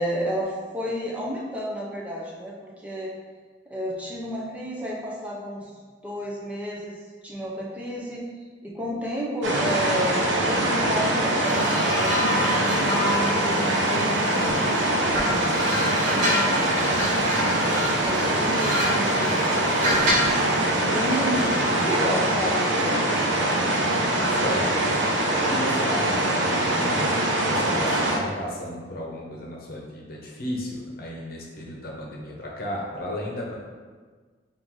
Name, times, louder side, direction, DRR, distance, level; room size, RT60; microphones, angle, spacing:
voice 1, 0.0-3.1 3.7-5.7 6.0-8.3 8.6-12.2 12.7-16.7 17.4-20.3 20.9-23.2, equal, 10° right, -4 dB, 0.5 m, -32 dB
sound 1, 9.4-28.2, right 1 dB, 85° right, 0.7 m, -23 dB
sound 2, 11.4-14.7 15.1-20.4 21.3-21.6, equal, 45° right, 1.2 m, -28 dB
voice 2, 24.0-24.9 25.5-27.1 27.5-33.6, left 1 dB, 55° left, -3 dB, 0.8 m, -34 dB
3.8 x 2.6 x 4.6 m, 1.5 s
head